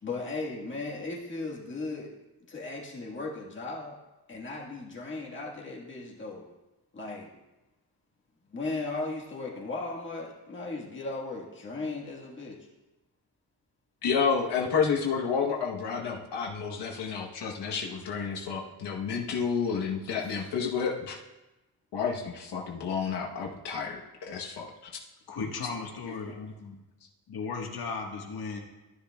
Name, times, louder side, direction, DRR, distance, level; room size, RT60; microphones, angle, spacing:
voice 1, 0.0-2.1 2.5-4.0 4.3-6.5 6.9-7.3 8.5-12.7 14.0-14.2 20.2-20.5 26.0-26.3, left 3 dB, 30° left, -3 dB, 1.5 m, -37 dB
voice 2, 14.0-21.2 21.9-24.7, left 6 dB, 90° left, -1 dB, 1.1 m, -30 dB
voice 3, 25.3-26.8 27.3-28.6, left 4 dB, 65° left, 1 dB, 1.5 m, -36 dB
12.5 x 10.5 x 2.3 m, 1.0 s
wide cardioid pair, 165°, 40 cm